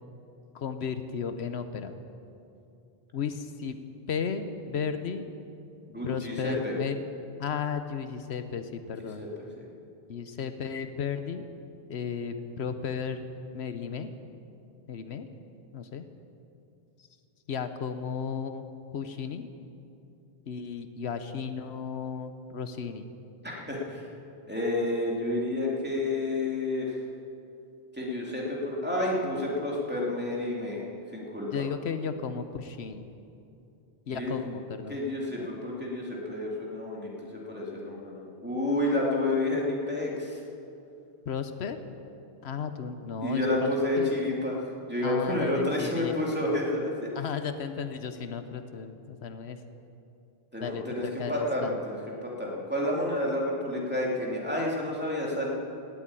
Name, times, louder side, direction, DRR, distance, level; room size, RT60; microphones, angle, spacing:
voice 1, 0.5-1.9 3.1-3.8 4.1-5.3 6.0-7.0 7.4-9.2 10.1-11.4 11.9-13.3 13.5-14.1 14.9-15.3 15.7-16.0 17.5-18.7 18.9-19.5 20.5-23.1 31.5-33.1 34.1-35.0 35.4-35.5 41.3-41.8 42.4-44.1 45.0-46.1 47.1-49.6 50.6-51.8, left 6 dB, 80° left, 9 dB, 1.1 m, -34 dB
voice 2, 5.9-6.7 9.2-9.6 23.4-24.1 24.5-27.0 27.9-30.8 31.1-31.6 34.1-34.3 34.9-40.4 43.2-47.1 50.5-55.5, left 1 dB, 10° right, -4 dB, 2.8 m, -30 dB
18.5 x 8.4 x 8.9 m, 2.7 s
omnidirectional pair, 1.1 m